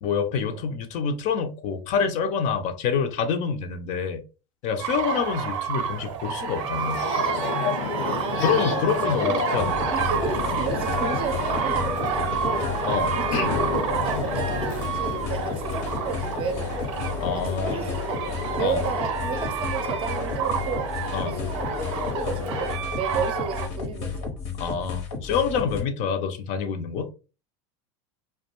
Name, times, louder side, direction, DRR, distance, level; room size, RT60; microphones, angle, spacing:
voice 1, 0.0-4.2 4.6-7.0 8.4-10.0 12.9-13.5 17.2-17.8 18.6-18.8 21.1-21.4 24.6-27.1, left 6 dB, 55° left, 0.5 m, -27 dB
sound 1, 4.8-23.7, right 8 dB, 90° right, 0.5 m, -30 dB
sound 2, 6.3-22.8, left 6 dB, 90° left, 1.1 m, -32 dB
voice 2, 7.9-8.9 9.3-9.5 9.9-16.9 17.3-18.3 18.5-20.9 21.2-24.3, right 6 dB, 35° right, 0.5 m, -33 dB
sound 3, 9.6-25.8, left 5 dB, 70° left, 0.8 m, -33 dB
2.3 x 2.2 x 2.9 m
supercardioid pair, 120°, 16 cm